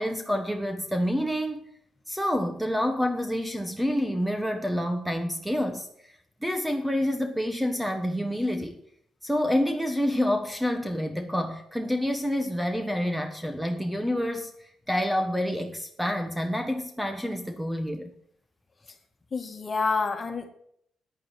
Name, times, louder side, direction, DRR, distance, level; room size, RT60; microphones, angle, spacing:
voice 1, 0.0-1.7 2.1-6.1 6.4-8.8 9.2-18.1, equal, 5° right, 7 dB, 1.2 m, -28 dB
voice 2, 19.3-20.5, left 4 dB, 35° left, 7 dB, 1.9 m, -28 dB
9.8 x 8.7 x 8.0 m, 0.67 s
cardioid pair, 90°, 0 cm